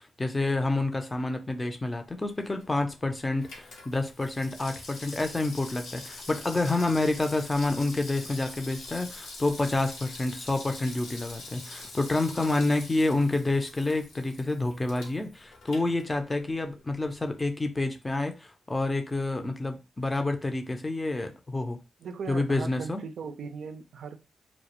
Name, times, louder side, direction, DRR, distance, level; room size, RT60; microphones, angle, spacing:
voice 1, 0.0-21.8 22.3-23.0, left 2 dB, 20° left, 0.5 m, -28 dB
Water tap faucet / Sink (filling or washing), 2.3-16.6 16.9-17.0, left 2 dB, 90° left, 0.7 m, -45 dB
voice 2, 22.0-24.2, right 5 dB, 75° right, 0.4 m, -38 dB
2.3 x 2.1 x 2.9 m
cardioid pair, 65°, 0 cm